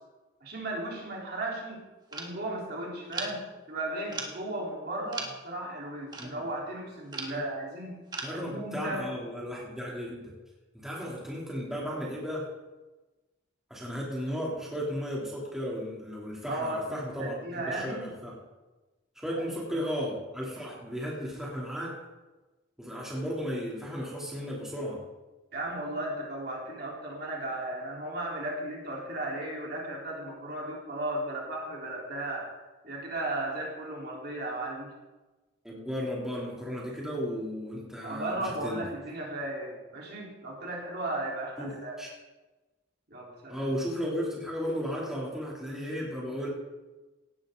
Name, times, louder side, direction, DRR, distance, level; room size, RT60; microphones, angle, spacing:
voice 1, 0.4-1.8 2.1-8.0 8.3-9.1 16.5-18.1 19.4-19.8 25.5-32.5 32.8-34.9 38.0-42.0 43.1-43.7, right 1 dB, 50° right, -3 dB, 3.8 m, -35 dB
sound 1, 2.1-2.3 3.1-3.4 4.1-4.4 4.9-5.4 6.1-6.4 7.1-7.5 8.1-8.4, right 3 dB, 20° right, 1.6 m, -38 dB
voice 2, 8.2-10.3 10.7-12.5 13.7-18.4 19.2-22.0 22.8-25.0 35.6-38.8 41.6-42.1 43.5-46.5, equal, ahead, -5 dB, 3.0 m, -35 dB
18.0 x 11.5 x 3.9 m, 1.2 s
head